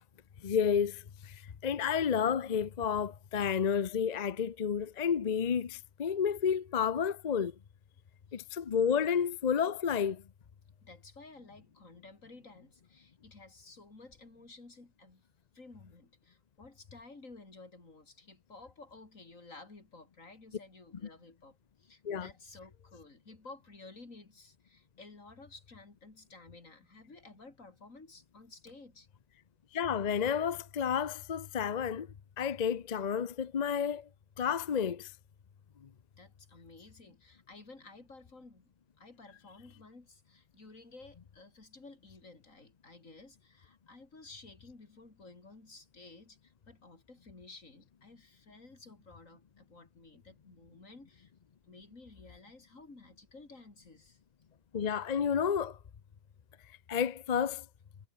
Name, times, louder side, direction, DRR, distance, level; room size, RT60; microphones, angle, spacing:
voice 1, 0.4-7.5 8.3-10.2 22.0-22.3 29.7-32.1 32.4-34.1 34.4-35.1 54.7-55.8 56.9-57.7, left 7 dB, 45° left, 0.6 m, -31 dB
voice 2, 10.8-15.2 15.5-29.1 36.2-38.7 39.0-51.3 51.7-54.2, left 3 dB, 60° left, 4.2 m, -54 dB
omnidirectional pair, 1.6 m